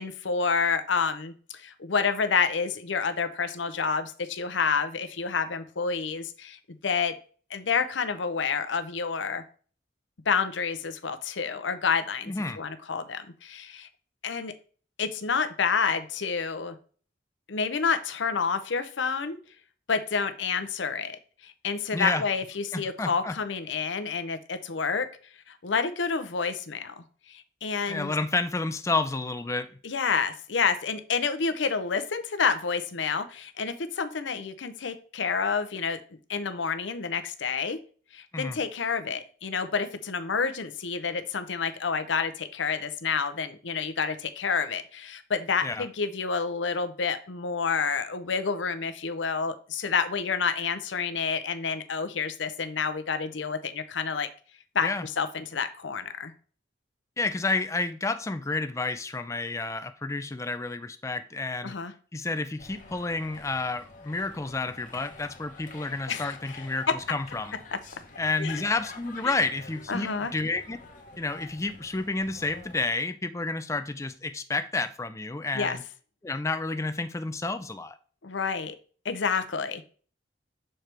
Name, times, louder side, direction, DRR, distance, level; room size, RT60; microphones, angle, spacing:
voice 1, 0.0-7.1 7.5-9.4 10.3-13.9 14.2-14.5 15.0-16.8 17.5-19.4 19.9-25.1 25.5-27.0 27.6-28.1 29.8-36.0 36.3-37.8 38.1-54.3 54.7-56.3 61.6-61.9 66.1-66.4 66.9-67.0 68.4-68.6 69.2-69.3 69.9-70.3 75.5-75.8 78.2-78.7 79.0-79.8, left 5 dB, 75° left, 0.7 m, -29 dB
voice 2, 12.3-12.6 21.9-22.2 22.7-23.3 27.9-29.7 38.3-38.6 45.6-45.8 54.8-55.1 57.2-61.8 62.1-67.5 68.2-70.8 71.2-75.8 76.2-78.0, left 3 dB, 15° left, 0.4 m, -30 dB
sound 1, 62.6-72.9, left 3 dB, 45° left, 1.0 m, -48 dB
6.5 x 4.4 x 3.3 m
head